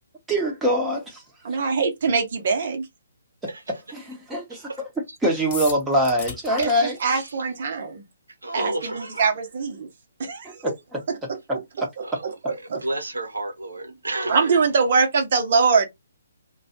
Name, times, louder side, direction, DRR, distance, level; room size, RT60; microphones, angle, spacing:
voice 1, 0.3-1.5 3.4-4.9 5.2-7.2 8.8-8.9 10.4-11.9, equal, 10° right, 0.9 m, -25 dB
voice 2, 1.4-2.9 6.6-6.7 7.0-8.0 8.5-9.9 10.2-10.6 12.4-12.5 14.3-15.9, right 4 dB, 50° right, 0.9 m, -22 dB
sound 1, 5.5-6.7, left 4 dB, 30° left, 1.0 m, -34 dB
voice 3, 7.0-7.5 8.4-9.3 12.0-12.2 12.8-14.7, right 2 dB, 75° right, 0.8 m, -31 dB
2.3 x 2.3 x 2.8 m
figure-of-eight pair, 135°, 0 cm